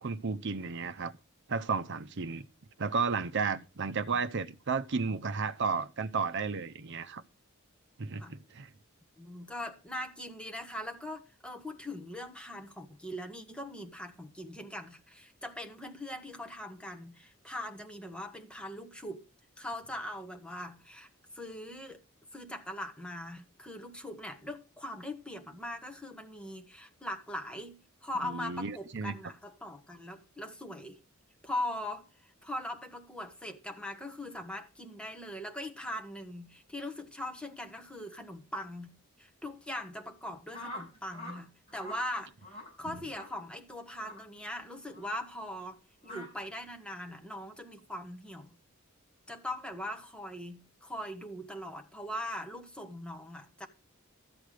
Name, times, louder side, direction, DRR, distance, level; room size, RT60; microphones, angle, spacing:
voice 1, 0.0-1.1 1.5-2.5 2.8-7.2 8.0-8.7 28.2-29.1 42.9-43.0, right 5 dB, 60° right, 0.7 m, -33 dB
voice 2, 9.2-19.3 19.6-21.1 21.3-22.0 22.3-31.0 31.4-38.9 39.2-48.6 49.3-53.7, left 1 dB, 5° left, 1.3 m, -41 dB
sound 1, 40.5-41.4 41.7-42.0 42.4-42.7 43.1-43.3 43.9-44.2 44.9-45.1 46.0-46.3, left 1 dB, 30° left, 6.3 m, -44 dB
13.5 x 8.0 x 5.0 m
head